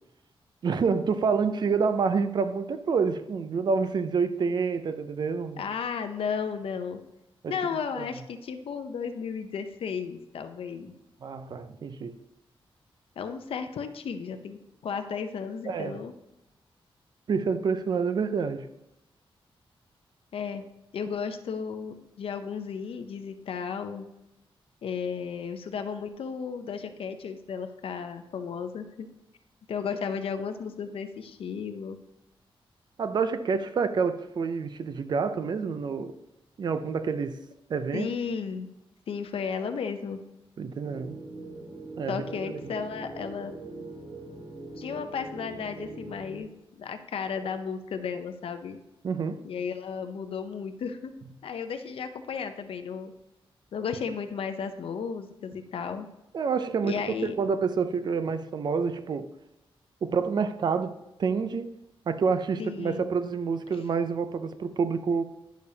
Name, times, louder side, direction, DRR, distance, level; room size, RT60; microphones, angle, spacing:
voice 1, 0.6-5.6 7.4-7.5 8.0-8.1 11.2-12.2 15.7-16.0 17.3-18.7 33.0-36.2 36.6-37.4 37.7-38.1 40.6-41.2 42.0-42.5 49.0-49.4 56.3-59.3 60.0-61.7 62.1-65.2, right 5 dB, 50° right, 0.5 m, -28 dB
voice 2, 5.6-7.0 7.5-10.9 13.2-16.1 20.3-20.6 20.9-24.1 24.8-29.1 29.7-32.0 37.9-38.7 39.1-40.2 42.1-43.5 44.8-48.8 49.4-51.1 51.4-53.1 53.7-56.1 56.8-57.3 62.6-63.1, left 6 dB, 75° left, 0.6 m, -34 dB
sound 1, 40.8-46.4, right 2 dB, 65° right, 2.1 m, -42 dB
10.0 x 6.6 x 2.8 m
wide cardioid pair, 175°, 10 cm